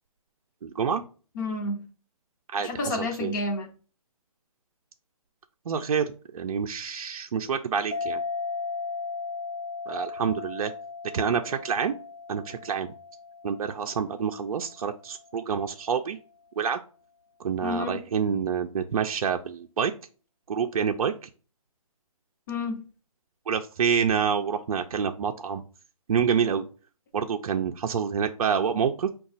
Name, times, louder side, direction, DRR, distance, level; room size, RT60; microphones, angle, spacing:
voice 1, 0.6-1.0 2.5-3.3 5.7-8.2 9.9-10.7 11.1-12.0 12.3-12.9 13.4-16.2 16.6-16.8 17.4-19.9 20.5-21.3 23.5-25.6 26.1-26.6 27.1-29.1, right 7 dB, 70° right, 4 dB, 0.5 m, -27 dB
voice 2, 1.3-1.8 2.6-3.7 17.6-18.0 22.5-22.8, left 2 dB, 30° left, 3 dB, 0.7 m, -30 dB
sound 1, 7.9-15.0, left 4 dB, 75° left, 0.9 m, -36 dB
4.9 x 2.3 x 3.9 m, 0.37 s
hypercardioid pair, 160°, 19 cm